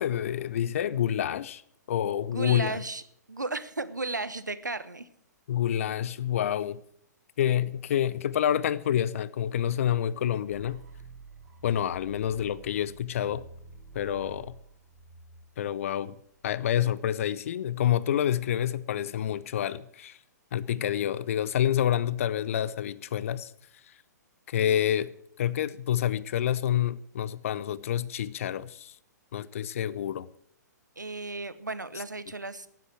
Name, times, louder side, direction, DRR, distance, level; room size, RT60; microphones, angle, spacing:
voice 1, 0.0-1.6 1.9-2.7 5.5-6.8 7.4-10.8 11.6-13.4 13.9-14.5 15.6-16.1 16.4-20.2 20.5-23.5 23.8-24.0 24.5-25.1 25.4-29.0 29.3-30.3 32.0-32.1, left 10 dB, 50° left, 0.5 m, -28 dB
voice 2, 2.3-3.0 3.3-5.1 31.0-32.7, right 3 dB, 80° right, 1.1 m, -34 dB
sound 1, 10.5-16.4, right 3 dB, 25° right, 4.0 m, -49 dB
12.5 x 9.3 x 7.7 m
figure-of-eight pair, 120°, 10 cm